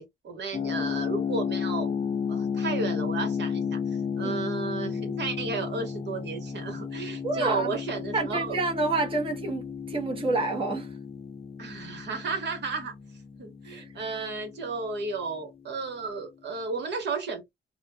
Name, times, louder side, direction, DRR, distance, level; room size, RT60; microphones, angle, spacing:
voice 1, 0.0-1.9 2.3-3.8 4.2-8.6 11.6-12.9 13.4-17.5, right 4 dB, 60° right, 1.2 m, -33 dB
sound 1, 0.5-15.3, left 6 dB, 30° left, 0.5 m, -33 dB
voice 2, 7.2-7.7 8.1-10.9 13.6-13.8, right 3 dB, 25° right, 0.8 m, -28 dB
2.4 x 2.1 x 3.2 m
cardioid pair, 90°, 20 cm